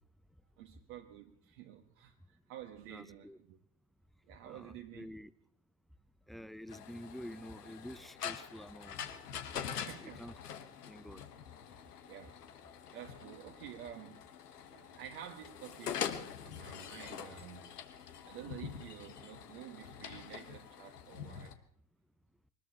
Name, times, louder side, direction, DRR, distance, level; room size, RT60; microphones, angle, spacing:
voice 1, 0.6-3.6 4.3-5.1 9.6-10.2 12.1-12.4 12.9-14.2 14.7-16.0 16.4-21.6, right 10 dB, 65° right, 0 dB, 1.6 m, -50 dB
voice 2, 2.9-3.4 4.5-5.3 6.3-9.2 9.5-10.3 10.9-11.2, equal, ahead, 15 dB, 0.6 m, -49 dB
sound 1, 6.7-21.5, left 8 dB, 85° left, 1.3 m, -45 dB
24.0 x 20.0 x 2.9 m, 0.64 s
hypercardioid pair, 75°, 45 cm